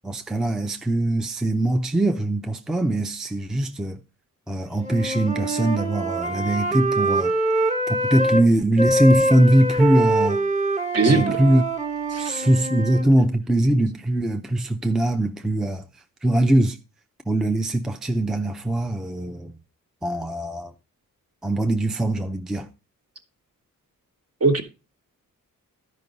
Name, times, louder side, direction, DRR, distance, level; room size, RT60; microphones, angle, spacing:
voice 1, 0.0-4.0 4.5-7.3 7.9-10.4 11.1-11.6 12.2-15.8 16.2-16.8 17.3-19.5 20.0-20.7 21.4-22.7, right 1 dB, ahead, 0.5 m, -21 dB
Wind instrument woodwind instrument, 4.8-8.4 8.8-13.0, right 1 dB, 20° right, 1.2 m, -24 dB
voice 2, 10.9-11.4 12.1-12.4 24.4-24.6, right 3 dB, 45° right, 1.3 m, -20 dB
12.0 x 5.3 x 3.9 m
wide cardioid pair, 130°, 34 cm